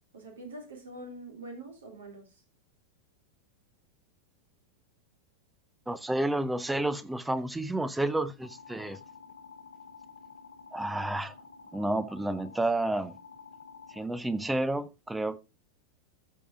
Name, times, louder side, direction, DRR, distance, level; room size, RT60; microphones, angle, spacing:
voice 1, 0.1-2.4, right 2 dB, 65° right, 3.2 m, -44 dB
voice 2, 5.9-9.0 10.7-11.3 11.7-13.2 13.9-15.4, right 1 dB, 5° right, 0.8 m, -30 dB
sound 1, 8.4-14.1, left 5 dB, 70° left, 1.1 m, -50 dB
14.0 x 5.0 x 3.5 m
figure-of-eight pair, 90°, 0 cm